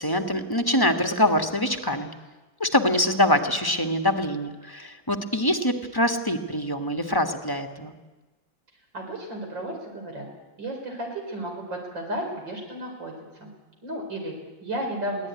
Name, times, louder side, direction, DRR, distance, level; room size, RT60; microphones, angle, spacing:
voice 1, 0.0-2.1 2.6-8.0, left 1 dB, 15° left, 5 dB, 1.2 m, -24 dB
voice 2, 8.9-10.3 10.6-13.5 13.8-15.3, right 1 dB, 70° right, 2 dB, 5.5 m, -33 dB
23.0 x 16.5 x 9.6 m, 1.2 s
omnidirectional pair, 2.1 m